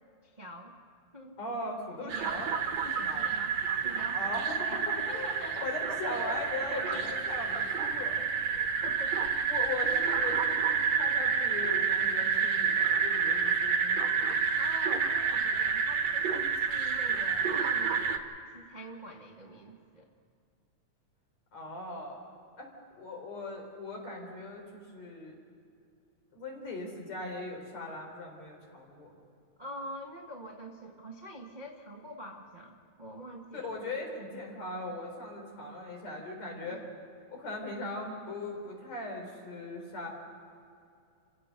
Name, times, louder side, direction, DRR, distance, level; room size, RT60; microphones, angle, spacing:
voice 1, 0.2-0.8 1.1-1.4 2.0-2.5 2.8-5.7 6.0-7.2 8.5-9.2 14.5-20.1 29.6-33.7 36.6-36.9, equal, 20° right, 0 dB, 1.2 m, -45 dB
voice 2, 1.4-2.5 2.8-3.3 4.1-4.8 5.0-5.3 5.6-8.2 9.5-14.3 21.5-22.2 22.6-22.7 23.0-25.4 26.3-29.2 33.5-36.8 37.3-40.1, left 2 dB, 65° left, 0 dB, 5.3 m, -39 dB
sound 1, 2.1-18.2, right 6 dB, 65° right, 2.6 m, -29 dB
29.0 x 16.0 x 6.8 m, 2.4 s
omnidirectional pair, 3.4 m